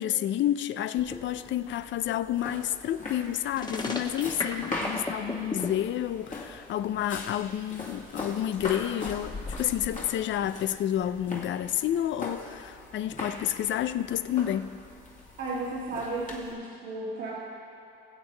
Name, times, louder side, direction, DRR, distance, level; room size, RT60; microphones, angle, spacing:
voice 1, 0.0-14.7, left 11 dB, 70° left, 0.5 m, -30 dB
sound 1, 1.0-16.5, left 2 dB, 40° left, 2.2 m, -41 dB
sound 2, 3.5-5.7, left 3 dB, 20° left, 1.2 m, -32 dB
voice 2, 15.4-17.3, right 2 dB, 85° right, 1.9 m, -34 dB
20.5 x 8.0 x 3.3 m
cardioid pair, 90°, 20 cm